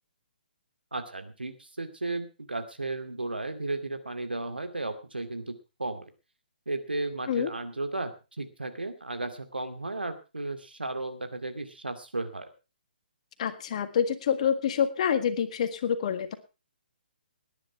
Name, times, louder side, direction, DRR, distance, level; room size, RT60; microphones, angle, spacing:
voice 1, 0.9-5.5 5.8-6.1 6.7-8.1 8.4-12.5, right 2 dB, 80° right, 8 dB, 2.4 m, -34 dB
voice 2, 13.4-16.3, left 8 dB, 45° left, 10 dB, 1.7 m, -27 dB
19.0 x 10.0 x 4.4 m, 0.31 s
figure-of-eight pair, 135°, 5 cm